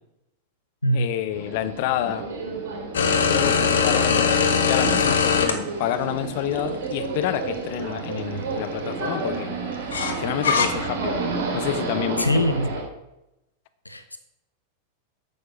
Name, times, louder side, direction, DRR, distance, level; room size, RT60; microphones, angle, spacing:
voice 1, 0.9-2.3 3.3-9.6 10.1-11.2 11.5-12.4 12.8-12.9, left 12 dB, 50° left, 11 dB, 0.7 m, -29 dB
sound 1, 1.3-12.8, right 3 dB, 55° right, 2.9 m, -31 dB
sound 2, 2.9-5.5 6.6-6.7 9.9-10.7, left 6 dB, 65° left, 1.1 m, -20 dB
voice 2, 12.2-12.7 13.9-14.2, equal, 85° left, 9 dB, 0.5 m, -22 dB
9.2 x 6.5 x 5.2 m, 0.91 s
figure-of-eight pair, 90°, 0 cm